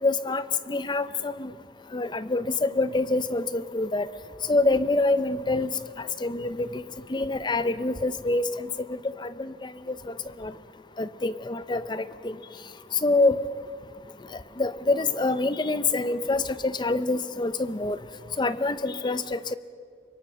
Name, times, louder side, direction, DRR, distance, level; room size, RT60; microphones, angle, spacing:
voice 1, 0.0-1.5 1.9-4.1 4.5-5.7 6.0-6.8 7.1-10.5 11.0-12.4 13.0-13.4 14.3-18.0 18.4-19.5, left 2 dB, 25° left, 13 dB, 0.6 m, -26 dB
25.0 x 23.0 x 6.5 m, 2.2 s
head